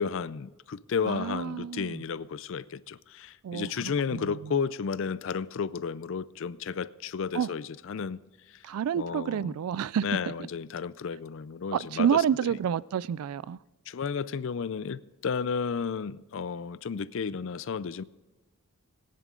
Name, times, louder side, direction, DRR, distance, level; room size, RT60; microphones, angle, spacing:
voice 1, 0.0-8.2 8.5-8.6 9.0-9.5 10.0-12.2 13.9-18.0, left 6 dB, 60° left, 0.4 m, -32 dB
voice 2, 1.0-2.0 3.4-4.5 7.3-7.5 8.6-10.0 11.7-13.6, right 8 dB, 80° right, 0.3 m, -29 dB
18.5 x 10.5 x 3.7 m
head